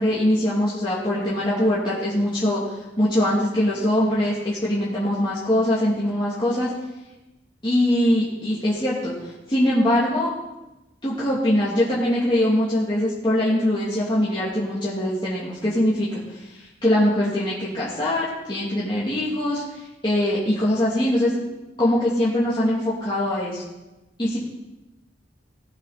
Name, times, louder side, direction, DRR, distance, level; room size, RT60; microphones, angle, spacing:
voice 1, 0.0-2.6 3.0-6.7 7.6-9.1 9.5-10.3 11.0-19.6 20.0-21.4 21.8-23.6 24.2-24.4, left 1 dB, 25° left, -9 dB, 2.8 m, -22 dB
19.0 x 8.1 x 4.3 m, 1.0 s
head